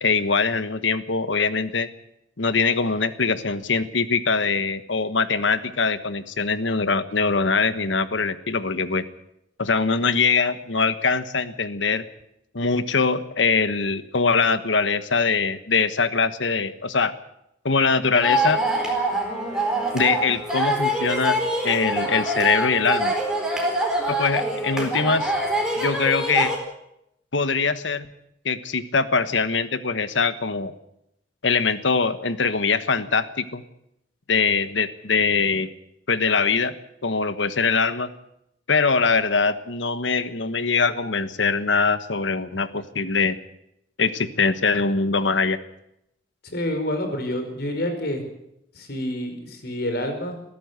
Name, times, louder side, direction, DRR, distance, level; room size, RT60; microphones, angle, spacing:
voice 1, 0.0-1.9 2.4-9.0 9.6-12.0 12.5-17.1 17.6-18.6 19.9-21.4 21.6-23.1 24.1-25.3 25.8-26.5 27.3-28.1 28.4-30.7 31.4-33.6 34.3-35.7 36.1-36.7 37.0-38.1 38.7-43.4 44.0-45.6, left 4 dB, 90° left, 12 dB, 1.3 m, -22 dB
sound 1, 18.1-26.6, right 1 dB, 5° right, 4.3 m, -24 dB
voice 2, 46.5-48.2 48.7-50.4, left 1 dB, 60° left, 6 dB, 4.9 m, -28 dB
22.0 x 14.5 x 8.2 m, 0.82 s
head